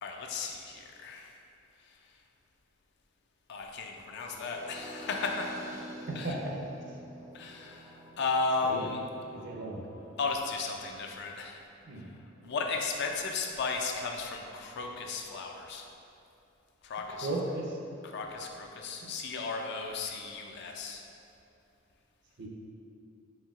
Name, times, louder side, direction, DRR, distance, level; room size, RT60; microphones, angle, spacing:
voice 1, 0.0-1.4 3.5-5.8 6.1-6.4 7.3-9.0 10.2-11.6 12.0-12.1 12.4-15.8 16.8-17.3 18.0-21.0, left 4 dB, 60° left, 2 dB, 0.4 m, -35 dB
sound 1, 4.2-10.2, right 1 dB, 15° right, 0.4 m, -48 dB
voice 2, 6.1-6.5 6.9-7.0 8.6-8.9 9.3-9.8 11.9-12.1 12.4-12.5 17.2-17.8 19.0-19.1 22.4-22.5, right 2 dB, 60° right, -1 dB, 0.6 m, -36 dB
4.3 x 3.7 x 2.4 m, 2.7 s
head